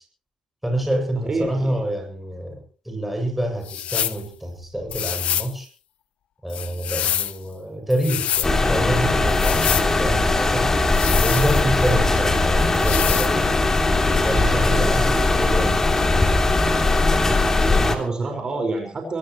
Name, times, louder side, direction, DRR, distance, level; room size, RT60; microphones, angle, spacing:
voice 1, 0.6-5.7 6.4-10.8 11.2-13.6 14.2-16.2, right 1 dB, 5° right, 2 dB, 7.6 m, -27 dB
voice 2, 1.3-1.9 17.7-19.2, right 3 dB, 40° right, 3 dB, 5.3 m, -27 dB
sound 1, 3.6-4.2 4.9-5.5 6.5-7.4 7.9-8.5 9.3-9.9 10.9-11.9 12.7-13.3, left 10 dB, 75° left, 0.8 m, -26 dB
sound 2, 8.4-17.9, left 2 dB, 20° left, 3.2 m, -19 dB
24.0 x 18.0 x 3.2 m, 0.38 s
cardioid pair, 110°, 2 cm